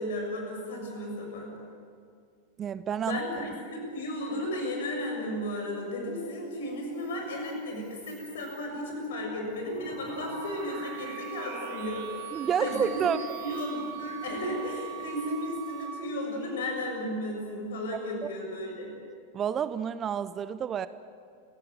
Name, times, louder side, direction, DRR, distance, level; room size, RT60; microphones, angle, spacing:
voice 1, 0.0-1.6 3.0-13.1 13.4-18.9, left 1 dB, 60° left, 2 dB, 6.6 m, -34 dB
voice 2, 2.6-3.2 12.3-13.2 18.2-18.3 19.3-20.9, right 8 dB, 25° right, 15 dB, 0.7 m, -29 dB
sound 1, 6.2-17.1, right 3 dB, 55° right, 7.1 m, -50 dB
sound 2, 9.4-15.9, right 13 dB, 5° left, 7.3 m, -42 dB
29.0 x 17.0 x 7.9 m, 2.3 s
figure-of-eight pair, 90°, 0 cm